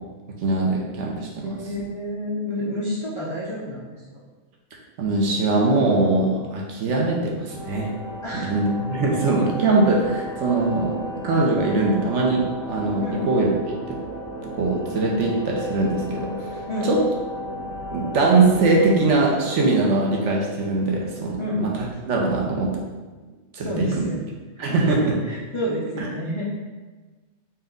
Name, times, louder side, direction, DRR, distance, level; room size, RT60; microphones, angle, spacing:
voice 1, 0.4-1.5 5.0-7.9 8.3-13.5 13.9-14.0 14.4-16.3 16.8-17.0 17.6-17.7 17.9-21.7 22.0-22.7 23.5-24.1 24.6-25.1 26.0-26.1, right 3 dB, 70° right, -2 dB, 1.0 m, -21 dB
voice 2, 1.4-4.0 8.2-8.5 13.0-13.3 16.7-16.9 21.4-21.7 23.6-24.2 24.7-24.8 25.2-26.5, left 1 dB, 50° left, -6 dB, 0.3 m, -29 dB
sound 1, 7.5-21.1, equal, 80° left, 1.5 m, -35 dB
4.2 x 2.2 x 3.8 m, 1.3 s
omnidirectional pair, 1.3 m